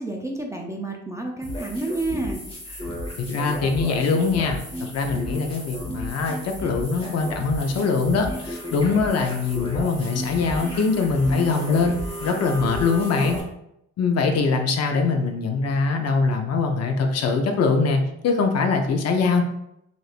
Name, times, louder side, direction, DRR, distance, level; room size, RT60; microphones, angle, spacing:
voice 1, 0.0-2.4, right 2 dB, 10° right, 0 dB, 0.4 m, -30 dB
sound 1, 1.4-13.4, equal, 20° left, 0.9 m, -33 dB
voice 2, 3.2-4.6 4.9-13.4 14.0-19.4, left 4 dB, 55° left, 4 dB, 0.5 m, -22 dB
3.3 x 2.5 x 2.4 m, 0.79 s
cardioid pair, 90°, 30 cm